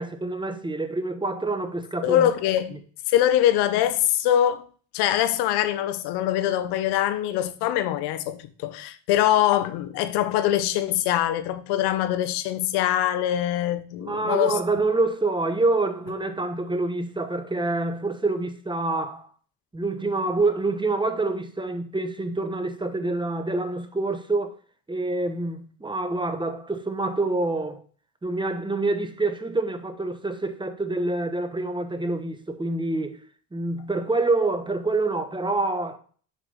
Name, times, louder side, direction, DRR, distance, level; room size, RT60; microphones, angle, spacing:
voice 1, 0.0-2.3 14.0-19.3 19.7-24.6 24.9-27.8 28.2-33.2 33.5-36.0, right 2 dB, 10° right, 1.2 m, -26 dB
voice 2, 2.0-2.8 3.1-4.6 4.9-14.6, left 12 dB, 60° left, 0.9 m, -23 dB
7.2 x 5.4 x 4.0 m
hypercardioid pair, 65°, 45 cm